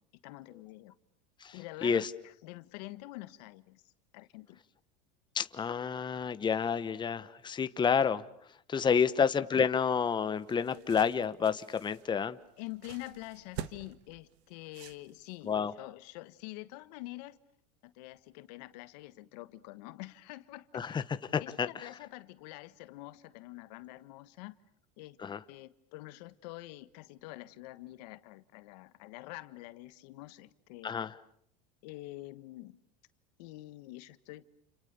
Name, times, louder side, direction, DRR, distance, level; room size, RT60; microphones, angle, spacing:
voice 1, 0.2-0.9 1.5-4.6 8.8-8.9 12.6-17.4 17.8-21.0 21.4-24.6 25.0-25.2 25.5-30.9 31.8-32.8 33.4-34.4, left 19 dB, 70° left, 1.4 m, -46 dB
voice 2, 1.4-2.1 5.3-8.2 8.7-12.4 15.4-15.7 20.7-21.0 21.3-21.9 25.2-25.4 30.8-31.1, left 6 dB, 20° left, 1.2 m, -29 dB
sound 1, 10.1-15.5, right 11 dB, 70° right, 1.7 m, -48 dB
29.5 x 29.5 x 6.9 m
supercardioid pair, 110°, 21 cm